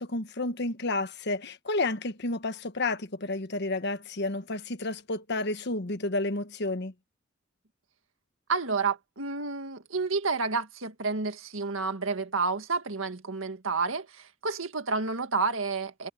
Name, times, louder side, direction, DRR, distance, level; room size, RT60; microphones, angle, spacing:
voice 1, 0.0-6.9, left 2 dB, 60° left, 1.4 m, -31 dB
voice 2, 8.5-16.1, right 4 dB, 85° right, 1.9 m, -30 dB
head